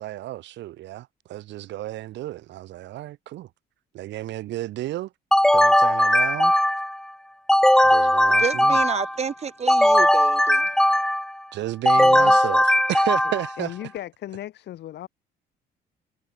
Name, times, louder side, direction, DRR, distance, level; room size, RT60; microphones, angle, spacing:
voice 1, 0.0-3.5 3.9-5.1 5.5-6.5 7.8-8.8 11.5-13.7, right 15 dB, 80° right, 6.6 m, -32 dB
sound 1, 5.3-7.0 7.5-9.2 9.7-11.3 11.8-13.6, left 1 dB, 5° left, 1.8 m, -18 dB
voice 2, 8.4-10.7, right 6 dB, 35° right, 5.9 m, -29 dB
voice 3, 12.0-12.4 13.6-15.1, left 13 dB, 70° left, 5.4 m, -36 dB
cardioid pair, 120°, 18 cm